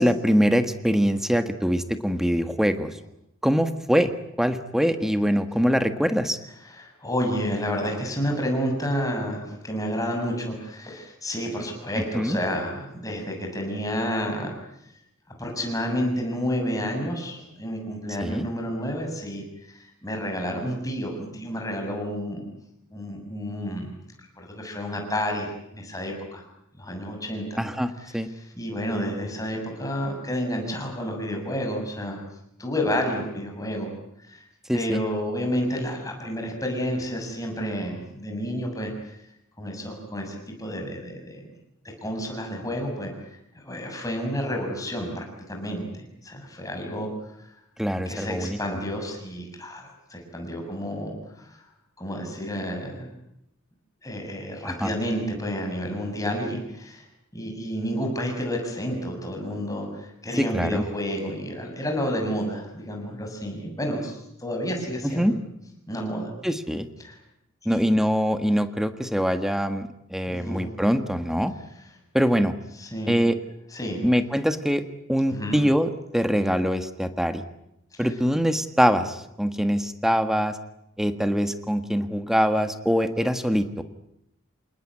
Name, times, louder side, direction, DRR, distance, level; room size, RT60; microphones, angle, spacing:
voice 1, 0.0-2.9 3.4-4.1 4.4-6.4 12.1-12.4 18.2-18.5 27.6-28.3 34.7-35.0 47.8-48.6 54.6-54.9 60.4-60.8 65.0-65.3 66.4-66.9 67.6-71.5 72.1-72.5 73.1-73.4 74.0-74.8 75.1-77.4 78.0-80.6 81.0-83.8, equal, ahead, 9 dB, 1.6 m, -23 dB
voice 2, 6.7-14.5 15.4-22.5 22.9-23.9 24.4-25.5 25.7-26.4 26.8-27.6 28.0-32.2 32.6-33.9 34.2-34.4 34.7-39.2 39.6-41.5 42.0-43.1 43.6-47.1 48.1-51.6 52.0-53.1 54.0-57.0 57.3-65.3 65.9-66.3 67.0-67.2 67.6-67.8 70.3-70.7 72.8-73.2 73.7-74.1 75.3-75.6, equal, 15° left, 2 dB, 7.0 m, -30 dB
28.0 x 19.0 x 9.7 m, 0.80 s
head